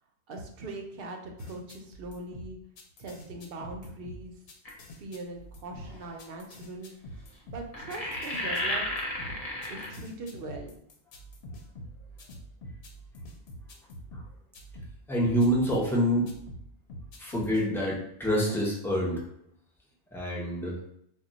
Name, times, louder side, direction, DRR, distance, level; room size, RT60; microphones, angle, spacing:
voice 1, 0.3-2.6 3.0-4.3 4.8-6.9 7.4-8.9 9.7-10.7, right 2 dB, 60° right, 2 dB, 0.7 m, -41 dB
sound 1, 1.4-15.9 16.3-17.7, equal, 70° left, 0.8 m, -45 dB
sound 2, 4.6-4.9 5.9-6.0 7.7-9.9, left 1 dB, 40° left, 0.7 m, -32 dB
voice 2, 15.1-16.3 17.2-19.2 20.1-20.8, equal, 5° left, -5 dB, 0.3 m, -26 dB
2.2 x 2.2 x 3.8 m, 0.70 s
omnidirectional pair, 1.2 m